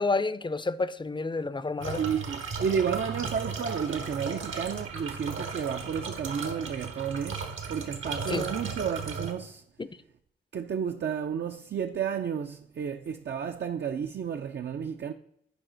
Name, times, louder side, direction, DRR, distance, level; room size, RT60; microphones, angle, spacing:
voice 1, 0.0-2.0 8.3-8.5 9.8-9.9, left 3 dB, 25° left, 0.5 m, -29 dB
sound 1, 1.8-9.3, right 4 dB, 75° right, 1.3 m, -36 dB
voice 2, 2.0-9.6 10.5-15.1, right 7 dB, 55° right, 0.5 m, -32 dB
10.5 x 4.8 x 3.9 m
cardioid pair, 60°, 21 cm